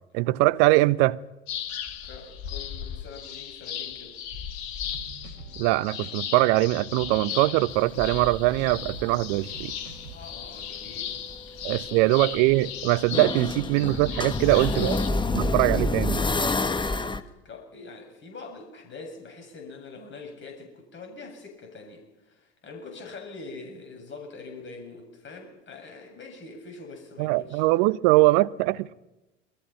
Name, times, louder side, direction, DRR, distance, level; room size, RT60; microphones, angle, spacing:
voice 1, 0.1-1.2 5.6-9.7 11.6-14.9 15.3-16.2 27.2-28.9, right 19 dB, 55° right, 1.0 m, -22 dB
sound 1, 1.5-15.1, left 9 dB, 55° left, 2.4 m, -37 dB
voice 2, 2.0-4.1 10.1-11.2 11.5-12.2 14.4-15.4 15.9-16.0 17.4-27.6 28.7-28.8, left 3 dB, 35° left, 7.5 m, -43 dB
sound 2, 4.8-10.2, right 4 dB, 85° right, 3.2 m, -45 dB
sound 3, 7.7-9.9 10.3-17.2, left 2 dB, 15° left, 1.4 m, -29 dB
28.0 x 21.0 x 5.8 m
figure-of-eight pair, 75°, 34 cm